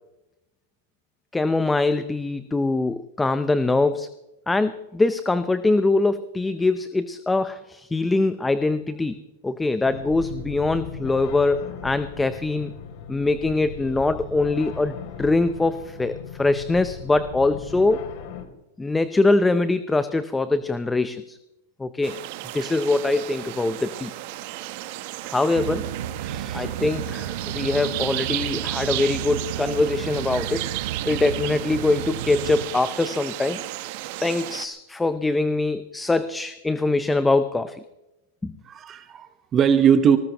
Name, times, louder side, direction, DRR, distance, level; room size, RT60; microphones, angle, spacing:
voice 1, 1.3-4.1 4.5-9.2 9.4-12.7 13.1-18.0 18.8-21.4 21.8-22.2 22.5-24.1 25.2-25.9 26.5-30.7 31.1-33.6 34.2-37.8 38.4-38.5, left 2 dB, 10° left, 12 dB, 0.6 m, -23 dB
sound 1, 9.8-18.5, left 7 dB, 55° left, 3.1 m, -38 dB
sound 2, 22.0-34.7, right 17 dB, 55° right, 1.0 m, -34 dB
sound 3, 25.5-32.6, right 10 dB, 75° right, 1.2 m, -32 dB
voice 2, 26.2-26.6 38.6-40.2, right 7 dB, 25° right, 10 dB, 1.1 m, -20 dB
20.0 x 19.0 x 3.0 m, 0.95 s
supercardioid pair, 140°, 0 cm